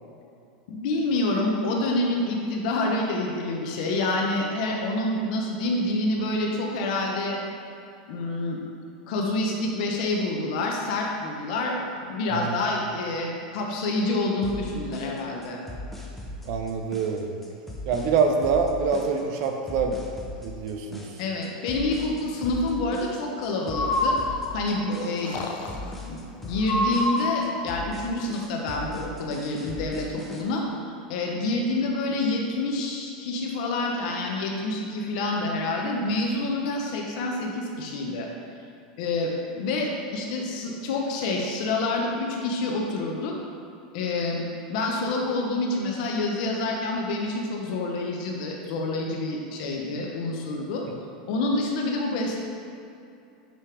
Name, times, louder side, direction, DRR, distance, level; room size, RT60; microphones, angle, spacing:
voice 1, 0.7-7.4 8.1-8.6 9.1-11.8 12.0-15.6 21.2-24.2 24.5-25.4 25.8-30.6 31.1-38.3 39.0-43.3 43.9-50.9 51.3-52.4, left 2 dB, 65° left, 0 dB, 1.1 m, -27 dB
sound 1, 14.4-30.4, left 1 dB, 5° left, 0.8 m, -39 dB
voice 2, 16.4-17.3 17.9-20.0 20.4-21.1, right 5 dB, 60° right, 4 dB, 0.7 m, -25 dB
Breathing, 23.6-24.8 25.2-25.9 26.6-27.7, left 1 dB, 45° left, 0.6 m, -27 dB
10.0 x 3.4 x 3.4 m, 2.6 s
supercardioid pair, 120°, 4 cm